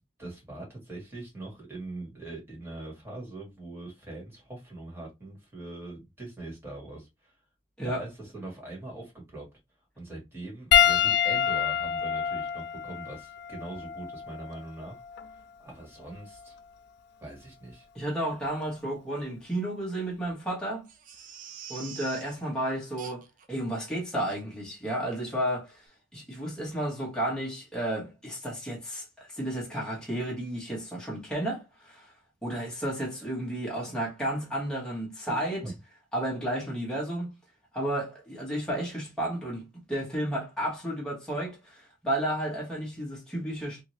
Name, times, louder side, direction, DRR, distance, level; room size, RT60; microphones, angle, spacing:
voice 1, 0.2-7.3 7.8-9.5 10.0-15.0 15.6-16.6 17.2-17.9 35.6-35.7, right 2 dB, 10° right, 1.6 m, -42 dB
Piano, 10.7-15.4 16.3-16.5 18.4-18.5, left 9 dB, 55° left, 0.3 m, -27 dB
voice 2, 17.9-20.9 21.7-25.8 26.1-32.1 32.4-35.6 36.1-37.3 37.7-43.8, right 1 dB, 5° left, 1.1 m, -32 dB
Crying sobbing, 20.9-22.4 23.0-23.4 23.8-23.9 24.3-24.4 24.9-25.0 25.3-25.4, right 7 dB, 40° right, 0.5 m, -45 dB
2.7 x 2.7 x 3.0 m
head